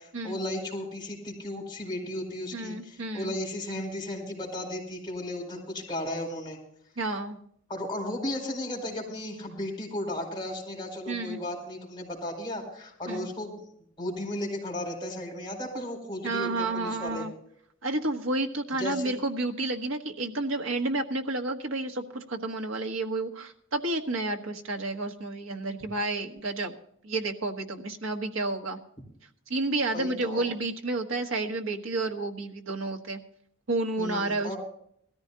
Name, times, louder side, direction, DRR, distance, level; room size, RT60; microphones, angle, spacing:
voice 1, 0.0-6.6 7.7-13.6 14.0-17.3 18.8-19.2 29.9-30.4 34.0-34.6, left 1 dB, 20° left, -1 dB, 4.5 m, -35 dB
voice 2, 2.5-3.4 7.0-7.4 11.1-11.4 13.1-13.3 16.2-17.3 17.8-26.7 27.0-28.8 29.5-33.2 33.7-34.5, right 2 dB, 80° right, 4 dB, 1.4 m, -30 dB
20.5 x 14.0 x 2.8 m, 0.66 s
head